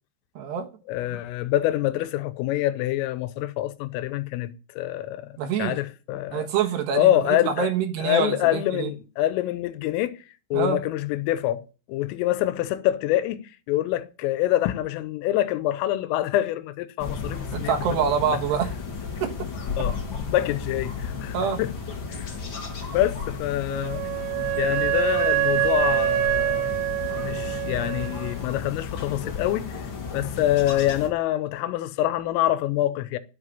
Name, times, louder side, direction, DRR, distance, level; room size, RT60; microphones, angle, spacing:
voice 1, 0.4-0.7 1.1-1.2 5.4-5.8 6.3-8.9 10.5-10.8 17.5-18.8 19.2-19.3 21.3-21.6, right 7 dB, 70° right, 3.1 m, -26 dB
voice 2, 0.9-4.5 4.8-5.3 5.6-6.5 6.9-7.7 8.0-10.1 10.5-13.4 13.7-17.7 18.3-18.4 19.8-20.0 20.2-21.7 22.1-22.3 22.9-24.0 24.6-26.7 27.2-29.8 30.1-33.2, left 14 dB, 85° left, 3.4 m, -25 dB
sound 1, 17.0-31.1, left 5 dB, 65° left, 1.1 m, -34 dB
Wind instrument woodwind instrument, 23.7-28.3, right 13 dB, 85° right, 1.5 m, -25 dB
10.5 x 7.6 x 9.8 m
omnidirectional pair, 5.8 m